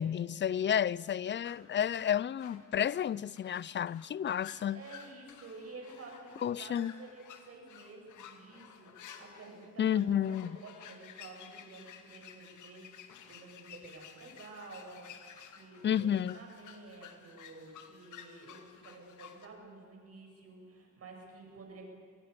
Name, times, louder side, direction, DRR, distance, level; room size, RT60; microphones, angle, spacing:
voice 1, 0.0-4.8 6.4-6.9 9.8-10.6 15.8-16.4, left 9 dB, 40° left, 0.5 m, -31 dB
sound 1, 1.4-19.5, left 8 dB, 80° left, 2.3 m, -54 dB
voice 2, 4.7-21.9, right 3 dB, 50° right, 8.0 m, -51 dB
27.5 x 20.0 x 6.9 m
cardioid pair, 90°, 30 cm